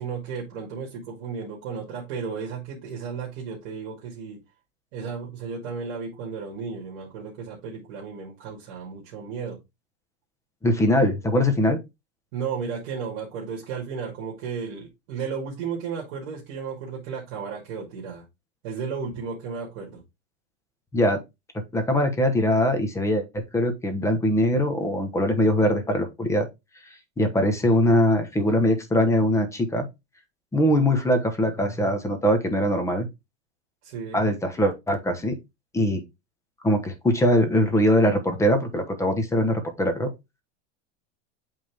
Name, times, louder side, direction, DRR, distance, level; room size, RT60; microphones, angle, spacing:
voice 1, 0.0-4.4 4.9-9.6 12.3-18.2 18.6-20.0 33.8-34.3, right 6 dB, 55° right, 2.3 m, -34 dB
voice 2, 10.6-11.8 20.9-21.2 21.7-26.5 27.2-29.9 30.5-33.1 34.1-35.4 35.7-36.0 36.6-40.1, left 1 dB, 10° left, 1.1 m, -22 dB
8.4 x 3.7 x 3.5 m
supercardioid pair, 150°, 35 cm